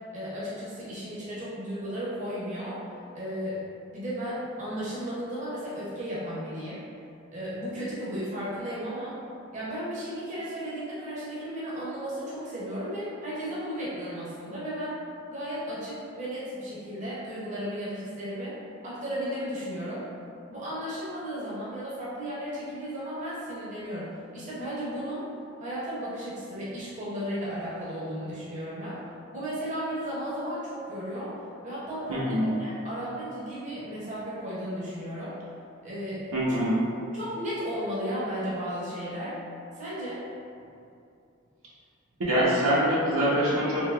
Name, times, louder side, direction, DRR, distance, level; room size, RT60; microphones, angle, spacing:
voice 1, 0.1-2.8 3.1-3.6 3.9-6.8 7.3-9.2 9.5-14.9 15.3-18.5 18.8-20.0 20.5-25.3 25.6-29.0 29.3-31.3 31.6-35.3 35.8-36.3 37.1-39.3 39.7-40.2, equal, 35° right, -9 dB, 0.6 m, -34 dB
voice 2, 32.1-32.5 36.3-36.8 42.2-43.9, equal, 80° right, -7 dB, 0.8 m, -24 dB
3.4 x 2.8 x 2.3 m, 2.5 s
head